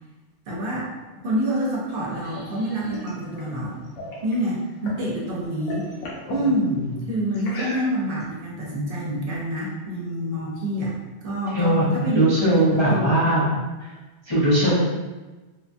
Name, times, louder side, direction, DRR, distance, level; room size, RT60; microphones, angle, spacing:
voice 1, 0.5-3.9 4.2-5.9 6.3-6.8 7.1-11.0 11.2-13.2, right 1 dB, 60° right, -4 dB, 0.7 m, -27 dB
sound 1, 1.7-5.1 5.4-6.5 7.3-8.2, left 1 dB, 90° left, 1.0 m, -37 dB
voice 2, 11.5-13.4 13.8-13.9 14.3-14.7, right 1 dB, 40° left, -9 dB, 0.4 m, -20 dB
3.1 x 2.2 x 2.5 m, 1.2 s
omnidirectional pair, 1.2 m